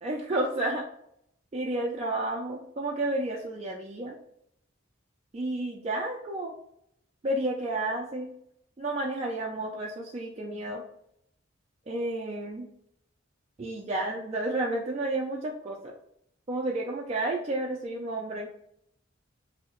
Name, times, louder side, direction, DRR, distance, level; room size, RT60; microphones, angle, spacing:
voice 1, 0.0-0.8 1.5-4.2 5.3-6.5 7.2-8.3 8.8-10.8 11.9-12.7 13.6-15.9 16.5-18.5, right 1 dB, 30° right, -2 dB, 0.3 m, -31 dB
3.2 x 2.7 x 2.9 m, 0.74 s
head